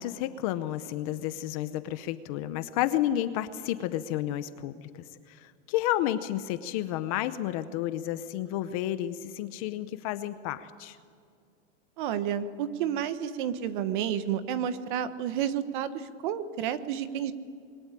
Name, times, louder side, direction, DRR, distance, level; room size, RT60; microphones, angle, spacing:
voice 1, 0.0-11.0, left 13 dB, 30° left, 12 dB, 0.7 m, -31 dB
voice 2, 12.0-17.3, right 9 dB, 40° right, 12 dB, 1.3 m, -30 dB
26.5 x 22.0 x 9.8 m, 2.2 s
supercardioid pair, 170°, 37 cm